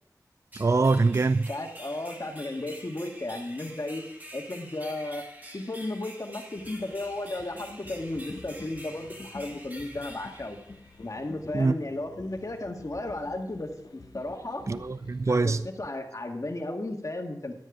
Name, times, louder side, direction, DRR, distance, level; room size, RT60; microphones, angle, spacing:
sound 1, 0.5-11.2, equal, 25° right, 2.3 m, -47 dB
voice 1, 0.6-1.5 11.5-11.8 14.7-15.6, right 3 dB, 45° right, 0.4 m, -23 dB
voice 2, 1.5-4.0 4.3-5.2 5.5-10.6 11.0-14.7 15.3-17.5, left 2 dB, 50° left, 1.9 m, -34 dB
sound 2, 6.6-15.6, left 3 dB, 70° left, 1.1 m, -49 dB
12.5 x 9.5 x 5.0 m
wide cardioid pair, 60°, 7 cm